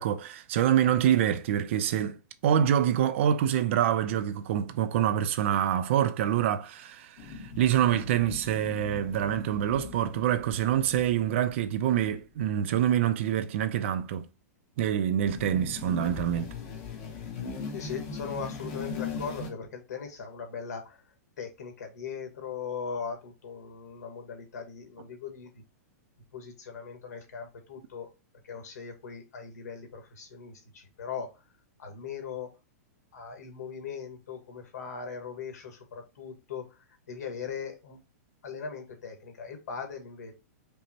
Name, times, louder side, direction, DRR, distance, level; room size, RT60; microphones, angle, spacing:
voice 1, 0.0-2.2 2.4-14.3 14.8-16.5, right 10 dB, 45° right, 0.4 m, -26 dB
sound 1, 7.2-12.2 15.2-19.5, left 5 dB, 35° left, 0.8 m, -40 dB
voice 2, 17.7-21.0 21.4-25.6 26.3-28.1 28.4-31.3 31.8-32.5 33.1-36.8 37.1-38.0 38.4-40.3, left 6 dB, 80° left, 1.3 m, -39 dB
5.2 x 2.1 x 2.8 m
supercardioid pair, 165°, 9 cm